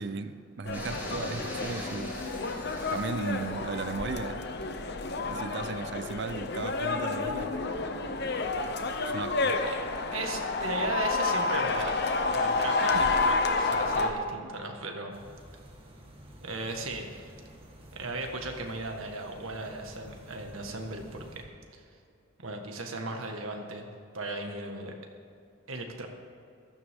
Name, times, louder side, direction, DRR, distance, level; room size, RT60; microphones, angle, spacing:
voice 1, 0.0-2.2 2.9-4.4 5.3-7.6 9.1-9.5 12.9-13.1 14.4-14.5, right 4 dB, 55° right, 11 dB, 0.6 m, -36 dB
sound 1, 0.7-14.1, left 3 dB, 55° left, 0.9 m, -30 dB
sound 2, 0.7-3.9, equal, 10° right, 2.3 m, -43 dB
voice 2, 10.1-11.9 12.3-15.1 16.4-17.3 17.9-21.5 21.7-21.8 22.4-23.9 24.1-24.9 25.7-26.1, right 2 dB, 85° right, 3 dB, 1.7 m, -36 dB
sound 3, 15.1-21.4, equal, 30° right, 1.6 m, -51 dB
15.0 x 13.0 x 3.7 m, 2.5 s
head